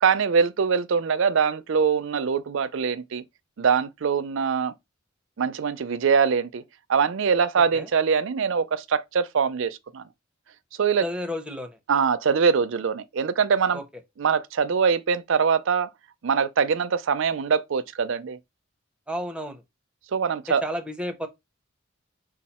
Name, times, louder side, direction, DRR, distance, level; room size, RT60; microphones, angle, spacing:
voice 1, 0.0-3.2 3.6-4.7 5.4-6.6 6.9-10.0 10.8-11.0 11.9-13.8 14.2-15.9 16.2-18.4 20.1-20.6, right 6 dB, 60° right, 0.4 m, -23 dB
voice 2, 11.0-11.8 13.7-13.8 19.1-19.6 20.5-21.3, equal, 5° right, 0.6 m, -31 dB
5.5 x 2.3 x 4.2 m
head